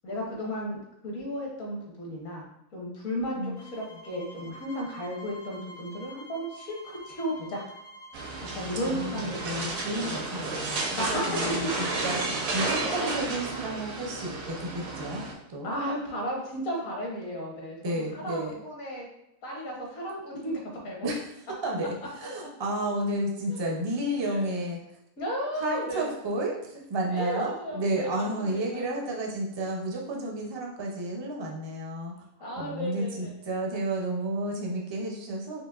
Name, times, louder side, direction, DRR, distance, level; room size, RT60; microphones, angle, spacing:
voice 1, 0.0-7.6 8.4-10.2 11.0-11.7 12.1-12.3 12.8-12.9 15.6-19.1 19.4-21.0 23.5-23.6 24.2-24.5 25.2-26.1 27.1-28.8 32.4-33.1, equal, 70° left, -2 dB, 1.5 m, -34 dB
sound 1, 3.5-12.2, right 1 dB, 30° left, 0.4 m, -48 dB
sound 2, 8.1-15.3, right 2 dB, 80° right, 1.2 m, -32 dB
voice 2, 8.9-15.7 17.8-18.6 21.0-24.8 25.6-32.1 32.6-35.6, right 1 dB, 35° right, -1 dB, 0.4 m, -32 dB
4.9 x 2.9 x 2.4 m, 0.86 s
omnidirectional pair, 1.4 m